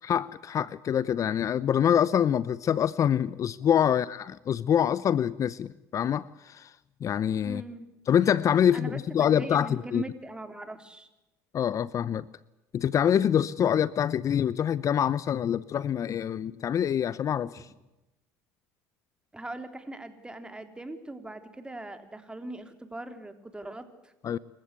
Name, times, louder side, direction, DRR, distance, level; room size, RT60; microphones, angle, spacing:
voice 1, 0.0-6.7 7.0-7.6 8.1-10.0 11.5-12.3 12.7-17.7 24.2-24.4, left 9 dB, 45° left, 19 dB, 0.7 m, -25 dB
voice 2, 3.6-3.9 7.4-7.9 8.7-11.1 17.6-17.7 19.3-24.1, right 1 dB, 10° right, 8 dB, 3.7 m, -41 dB
27.5 x 15.5 x 8.3 m, 0.98 s
hypercardioid pair, 75°, 8 cm